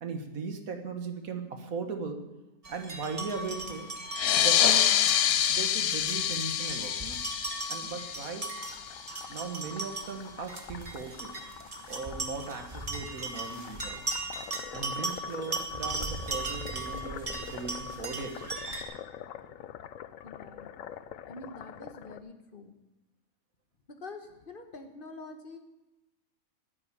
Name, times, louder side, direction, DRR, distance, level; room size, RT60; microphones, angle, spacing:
voice 1, 0.0-2.3 2.7-3.9 4.3-7.2 7.7-8.6 9.3-11.4 11.9-14.1 14.7-18.6, right 4 dB, 75° right, 5 dB, 1.8 m, -38 dB
sound 1, 2.6-18.8, right 2 dB, 25° right, 1.4 m, -38 dB
sound 2, 4.1-9.2, left 10 dB, 90° left, 1.1 m, -27 dB
sound 3, 8.6-22.2, left 10 dB, 70° left, 1.0 m, -46 dB
voice 2, 20.2-20.7 21.3-22.7 23.9-25.6, left 3 dB, 40° left, 5 dB, 1.3 m, -46 dB
10.5 x 9.6 x 8.3 m, 1.0 s
omnidirectional pair, 1.5 m